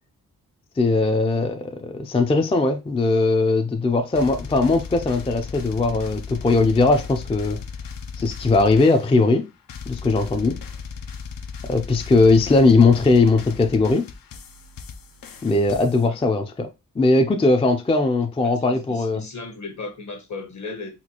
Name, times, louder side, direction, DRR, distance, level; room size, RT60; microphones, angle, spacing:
voice 1, 0.8-7.6 8.2-9.5 9.9-10.6 11.7-14.1 15.4-16.7 17.0-19.2, left 3 dB, 20° left, 0.3 m, -19 dB
sound 1, 4.1-9.4 9.7-16.1, left 5 dB, 80° left, 0.5 m, -37 dB
voice 2, 18.4-20.9, left 3 dB, 55° left, 1.0 m, -36 dB
4.2 x 2.3 x 2.9 m
wide cardioid pair, 105°, 34 cm